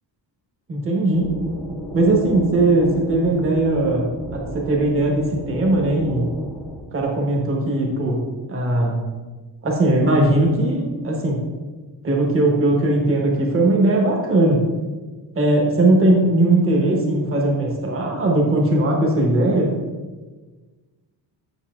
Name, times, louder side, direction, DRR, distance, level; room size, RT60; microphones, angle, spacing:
voice 1, 0.7-1.2 1.9-6.3 6.9-8.2 8.5-8.9 9.6-11.4 12.0-14.6 15.3-19.7, right 2 dB, 30° right, -1 dB, 1.1 m, -19 dB
sound 1, 1.1-6.8, right 1 dB, ahead, 0.7 m, -31 dB
7.1 x 6.8 x 2.4 m, 1.3 s
cardioid pair, 170°, 43 cm